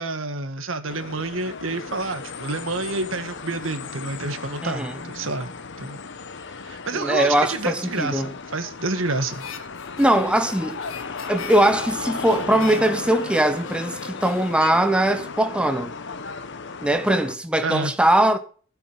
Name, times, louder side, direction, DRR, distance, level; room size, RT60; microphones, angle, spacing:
voice 1, 0.0-5.5 5.8-6.0 6.5-8.2 8.5-9.5 17.6-17.9, right 3 dB, 80° right, 1.8 m, -28 dB
sound 1, 0.9-17.3, left 4 dB, 65° left, 1.1 m, -35 dB
voice 2, 4.6-4.9 6.9-8.3 10.0-10.8 11.3-15.9 16.8-18.4, right 1 dB, 5° right, 0.9 m, -21 dB
Harmonica, 9.3-15.8, left 6 dB, 80° left, 1.9 m, -42 dB
17.0 x 8.0 x 5.7 m
head